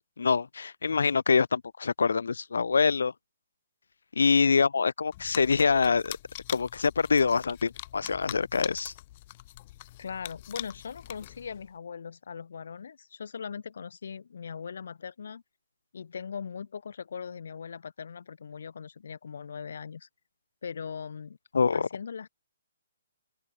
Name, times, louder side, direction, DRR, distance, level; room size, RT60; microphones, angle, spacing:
voice 1, 0.2-3.1 4.2-6.2 6.5-8.9 21.5-21.9, left 5 dB, 85° left, 1.8 m, -25 dB
sound 1, 5.1-11.7, left 16 dB, 30° left, 6.1 m, -43 dB
voice 2, 10.0-15.4 15.9-20.1 20.6-21.4 21.7-22.3, left 6 dB, 65° left, 3.5 m, -40 dB
open air
hypercardioid pair, 165°, 0 cm